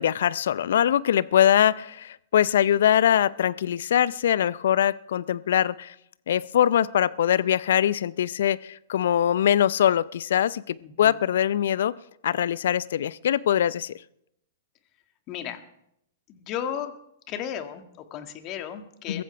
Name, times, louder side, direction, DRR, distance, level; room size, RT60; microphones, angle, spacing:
voice 1, 0.0-5.9 6.3-12.0 12.2-13.9 19.1-19.2, left 10 dB, 65° left, 19 dB, 0.6 m, -22 dB
voice 2, 10.8-11.2 15.3-15.6 16.3-16.9 17.3-19.2, left 9 dB, 35° left, 7 dB, 2.0 m, -34 dB
22.5 x 15.0 x 3.4 m, 0.76 s
hypercardioid pair, 110°, 0 cm